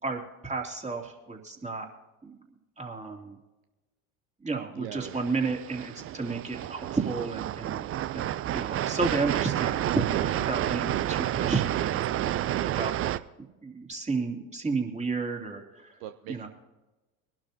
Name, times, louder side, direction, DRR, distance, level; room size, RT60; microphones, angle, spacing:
voice 1, 0.0-1.9 2.2-2.4 2.8-3.4 4.4-7.9 8.1-12.3 12.6-12.9 13.6-16.0 16.3-16.5, right 4 dB, 15° right, 1 dB, 2.8 m, -32 dB
voice 2, 4.7-5.2 16.0-16.5, right 11 dB, 60° right, 8 dB, 0.8 m, -41 dB
sound 1, 5.0-13.2, right 12 dB, 30° right, 0.5 m, -30 dB
22.5 x 12.0 x 2.8 m, 1.1 s
hypercardioid pair, 75°, 44 cm